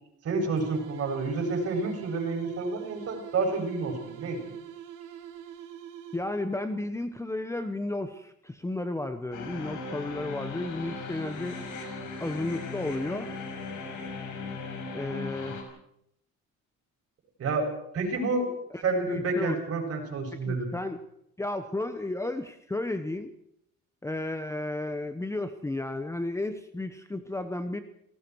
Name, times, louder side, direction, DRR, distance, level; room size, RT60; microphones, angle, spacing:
voice 1, 0.2-4.4 17.4-17.7 17.9-18.5 18.8-20.7, right 3 dB, 50° right, 1 dB, 7.7 m, -29 dB
sound 1, 0.6-6.5, right 9 dB, 85° right, 3.7 m, -44 dB
voice 2, 6.1-11.6 12.2-13.3 14.9-15.6 18.7-19.6 20.4-21.0 21.4-23.3 24.0-27.8, left 2 dB, 10° left, 9 dB, 1.0 m, -33 dB
sound 2, 9.3-15.6, left 4 dB, 85° left, 5.5 m, -38 dB
30.0 x 18.5 x 4.7 m, 0.73 s
cardioid pair, 135°, 30 cm